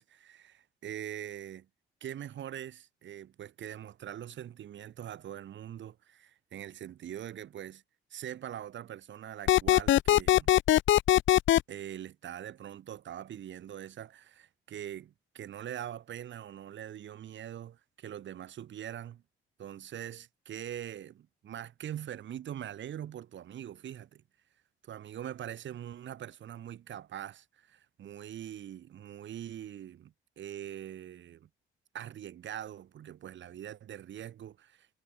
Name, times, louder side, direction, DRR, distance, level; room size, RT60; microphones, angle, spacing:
voice 1, 0.0-1.7 2.0-7.8 8.1-10.5 11.7-19.2 19.6-24.2 24.8-31.5 31.9-34.9, right 10 dB, 70° right, 5.7 m, -43 dB
sound 1, 9.5-11.6, left 13 dB, 75° left, 0.9 m, -21 dB
cardioid pair, 90°, 20 cm